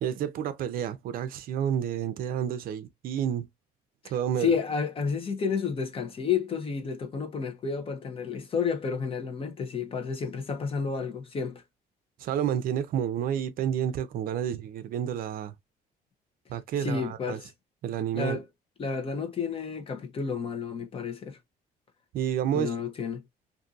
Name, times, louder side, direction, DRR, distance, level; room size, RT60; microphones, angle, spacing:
voice 1, 0.0-3.5 4.1-4.5 12.2-15.5 16.5-17.4 17.8-18.4 22.1-22.7, right 9 dB, 60° right, 0.5 m, -30 dB
voice 2, 4.4-11.6 16.8-17.5 18.1-18.4 18.8-21.4 22.5-23.2, left 6 dB, 35° left, 0.8 m, -31 dB
2.6 x 2.6 x 2.4 m
cardioid pair, 125°, 17 cm